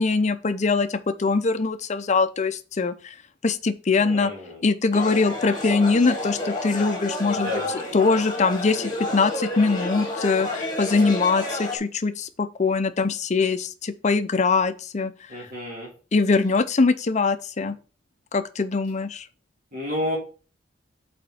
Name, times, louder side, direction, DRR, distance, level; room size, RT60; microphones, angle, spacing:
voice 1, 0.0-3.1 3.4-4.3 4.6-7.6 7.9-15.1 16.1-17.8 18.3-19.3, left 4 dB, 40° left, 0.5 m, -22 dB
voice 2, 4.0-4.6 7.4-7.7 15.3-15.9 19.7-20.2, left 1 dB, 50° right, 2.3 m, -30 dB
sound 1, 4.9-11.8, left 2 dB, 25° left, 1.7 m, -30 dB
5.3 x 4.3 x 5.6 m
head